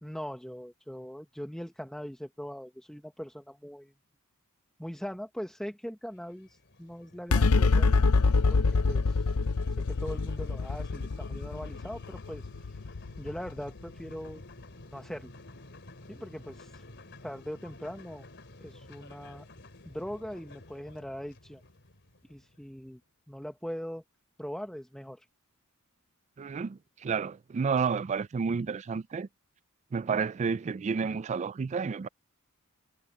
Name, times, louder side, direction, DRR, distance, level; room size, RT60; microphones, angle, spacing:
voice 1, 0.0-3.9 4.8-7.9 8.5-9.3 9.8-12.5 12.7-14.4 14.9-15.3 16.1-16.8 17.2-18.3 18.6-19.5 19.8-21.6 22.3-23.0 23.3-24.0 24.4-25.3, equal, 5° left, 1.1 m, -41 dB
sound 1, 6.1-22.8, left 2 dB, 55° left, 3.5 m, -51 dB
sound 2, 7.3-14.0, left 3 dB, 80° left, 0.7 m, -26 dB
voice 2, 26.4-29.3 29.9-32.1, right 5 dB, 30° right, 0.3 m, -30 dB
head